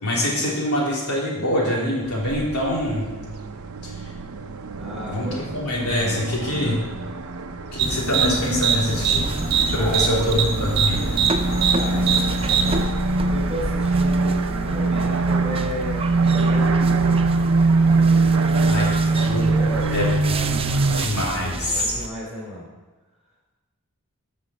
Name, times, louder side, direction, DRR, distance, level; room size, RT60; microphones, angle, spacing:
voice 1, 0.0-3.1 3.8-3.9 5.1-6.8 7.7-9.3 9.7-11.0 18.5-18.9 19.1-19.5 19.9-21.9, left 1 dB, 75° left, -4 dB, 3.3 m, -24 dB
sound 1, 2.0-21.1, right 3 dB, 70° right, 0.7 m, -23 dB
voice 2, 4.8-5.4 9.8-10.1 11.7-12.1 13.3-17.0 17.8-19.0 19.5-20.2 21.7-22.7, left 1 dB, 5° right, -4 dB, 3.1 m, -34 dB
sound 2, 7.8-12.8, right 6 dB, 45° right, 1.3 m, -23 dB
sound 3, 8.9-22.1, right 2 dB, 25° right, 0.5 m, -32 dB
13.0 x 6.2 x 4.3 m, 1.2 s
head